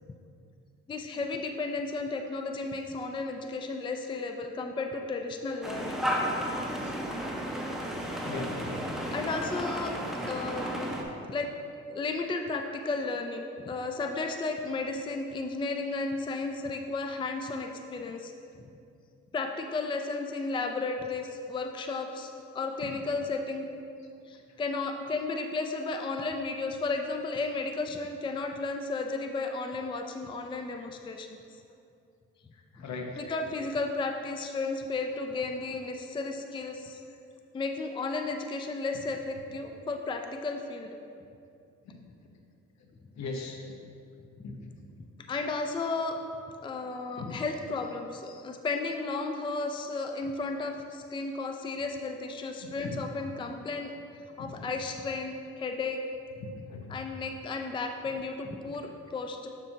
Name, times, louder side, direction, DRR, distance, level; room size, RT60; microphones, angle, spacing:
voice 1, 0.9-6.0 9.1-10.9 11.2-11.5 11.9-18.3 19.3-23.7 24.3-31.6 32.8-32.9 33.2-37.0 37.5-41.0 45.3-46.2 46.6-53.9 54.4-56.0 56.9-59.5, left 3 dB, 15° left, 4 dB, 0.4 m, -33 dB
sound 1, 5.6-11.0, equal, ahead, 0.9 m, -33 dB
voice 2, 8.2-8.8 32.8-33.1 41.9-42.0 43.2-43.6 44.4-44.6 47.2-47.3 52.8-52.9 54.4-54.5 56.7-56.9, left 4 dB, 65° left, 2 dB, 1.0 m, -38 dB
7.1 x 6.8 x 2.8 m, 2.5 s
cardioid pair, 90°, 30 cm